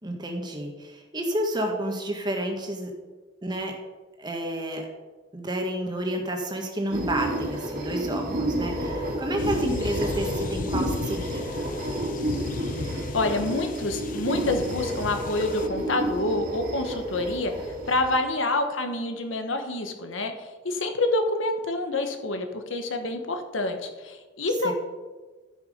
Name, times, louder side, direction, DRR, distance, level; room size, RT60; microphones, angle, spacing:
voice 1, 0.0-2.9 3.4-3.8 4.2-4.9 5.3-11.5 24.6-24.7, right 1 dB, 20° right, 2 dB, 1.6 m, -30 dB
sound 1, 6.9-18.2, right 1 dB, 50° right, 2.4 m, -31 dB
sound 2, 9.4-15.7, left 4 dB, 45° left, 0.4 m, -36 dB
voice 2, 13.1-17.5 17.9-24.7, left 2 dB, 85° left, 6 dB, 1.3 m, -27 dB
14.0 x 6.1 x 5.1 m, 1.3 s
head